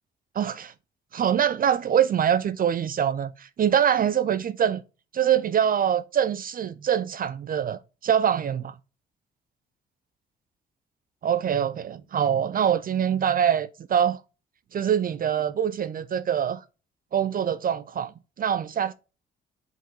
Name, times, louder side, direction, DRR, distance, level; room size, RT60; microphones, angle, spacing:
voice 1, 0.4-0.7 1.1-4.8 5.1-8.7 11.2-14.2 14.7-16.6 17.1-18.1 18.4-18.9, right 9 dB, 45° right, 0.5 m, -24 dB
5.0 x 4.0 x 5.1 m
cardioid pair, 90°, 20 cm